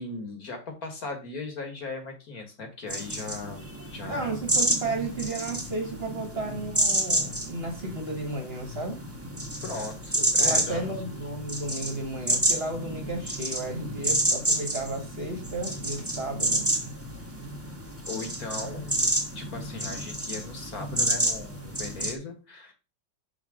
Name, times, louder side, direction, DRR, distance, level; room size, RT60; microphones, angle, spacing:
voice 1, 0.0-4.4 9.6-10.9 18.0-22.7, left 3 dB, 55° left, 4 dB, 1.9 m, -38 dB
sound 1, 2.9-22.1, right 1 dB, 10° right, 1.1 m, -29 dB
voice 2, 4.1-9.0 10.1-16.6, right 2 dB, 35° right, 3 dB, 1.4 m, -33 dB
6.1 x 4.9 x 4.9 m, 0.30 s
omnidirectional pair, 2.0 m